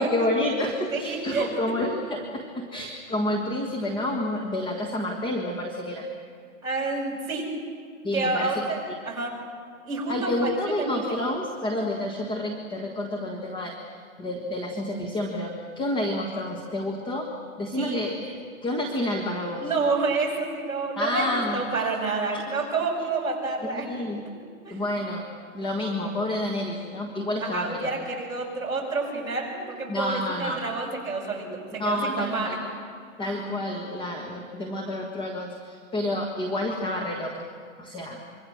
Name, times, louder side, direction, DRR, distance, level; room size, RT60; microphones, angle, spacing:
voice 1, 0.0-6.1 8.0-8.6 10.1-13.8 14.2-17.3 17.6-18.4 18.6-19.7 20.9-21.9 22.3-22.4 23.6-24.2 24.7-27.9 29.9-30.6 31.8-32.6 33.2-37.4 37.8-38.2, left 1 dB, 10° left, 1 dB, 1.6 m, -29 dB
voice 2, 0.9-1.8 6.6-7.5 8.1-9.3 9.9-10.5 10.8-11.3 17.8-18.0 19.6-23.9 24.6-24.8 27.4-32.6, right 3 dB, 10° right, -5 dB, 5.8 m, -29 dB
26.0 x 24.0 x 6.5 m, 2.1 s
hypercardioid pair, 155°, 42 cm